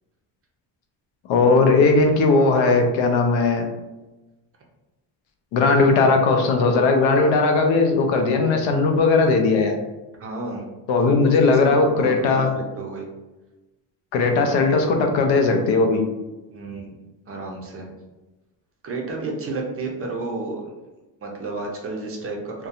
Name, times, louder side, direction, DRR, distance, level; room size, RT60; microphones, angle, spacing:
voice 1, 1.3-3.7 5.5-9.8 10.9-12.5 14.1-16.0, left 3 dB, 75° left, 4 dB, 0.6 m, -18 dB
voice 2, 10.2-10.7 11.1-11.3 11.6-13.1 16.5-16.9 17.3-17.9 18.8-20.7 21.2-22.7, right 3 dB, 30° right, 0 dB, 0.5 m, -31 dB
2.7 x 2.2 x 2.4 m, 1.1 s
cardioid pair, 125°, 46 cm